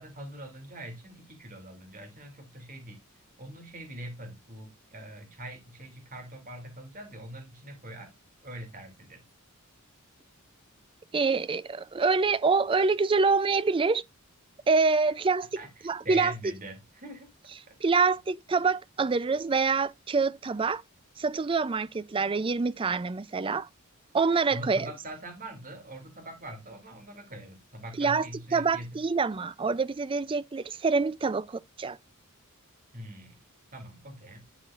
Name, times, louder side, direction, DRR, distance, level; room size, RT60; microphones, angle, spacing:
voice 1, 0.0-3.0 3.4-8.1 8.4-9.2 15.6-17.3 17.7-17.8 24.5-28.9 32.9-33.4 33.7-34.4, right 1 dB, 40° right, 2.5 m, -43 dB
voice 2, 11.1-14.0 14.7-15.5 15.8-16.3 17.8-20.8 21.2-23.7 24.1-24.9 28.0-28.3 28.5-32.0, right 4 dB, 25° right, 0.4 m, -26 dB
12.5 x 5.0 x 2.4 m
head